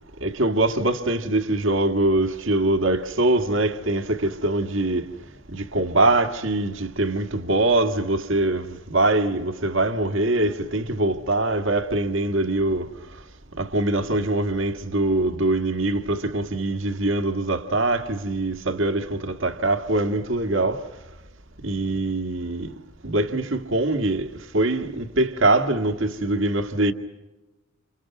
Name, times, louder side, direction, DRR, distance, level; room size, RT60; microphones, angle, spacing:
voice 1, 0.2-5.0 5.5-12.9 13.6-20.8 21.6-22.7 23.0-24.3 24.5-26.9, right 2 dB, 65° right, 1.9 m, -23 dB
30.0 x 29.0 x 6.1 m
head